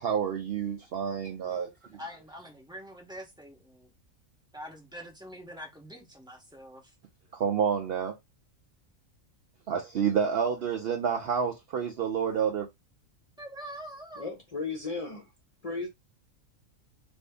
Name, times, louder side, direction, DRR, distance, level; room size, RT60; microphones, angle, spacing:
voice 1, 0.0-1.7 7.3-8.2 9.7-12.7, right 7 dB, 65° right, 0.6 m, -29 dB
voice 2, 1.8-3.9 4.5-6.9 13.4-14.3, equal, 5° right, 0.6 m, -45 dB
voice 3, 14.1-15.3 15.6-15.9, left 3 dB, 35° left, 0.7 m, -35 dB
2.6 x 2.6 x 3.4 m
omnidirectional pair, 1.4 m